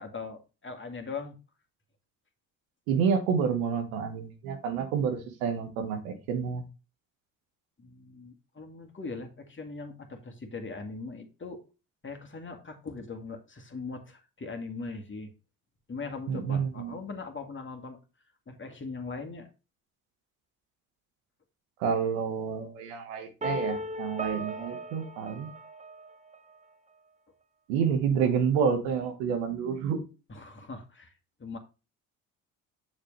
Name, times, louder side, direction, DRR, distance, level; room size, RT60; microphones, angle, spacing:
voice 1, 0.0-1.4 7.8-11.6 12.0-15.3 15.9-18.0 18.5-19.5 30.3-31.1 31.4-31.6, left 4 dB, 30° left, 4 dB, 2.1 m, -40 dB
voice 2, 2.9-6.6 16.3-16.9 21.8-25.5 27.7-30.0, right 6 dB, 85° right, 6 dB, 1.5 m, -29 dB
sound 1, 23.4-26.4, equal, 15° right, 0.7 m, -37 dB
6.9 x 6.8 x 3.3 m, 0.31 s
hypercardioid pair, 55°, 41 cm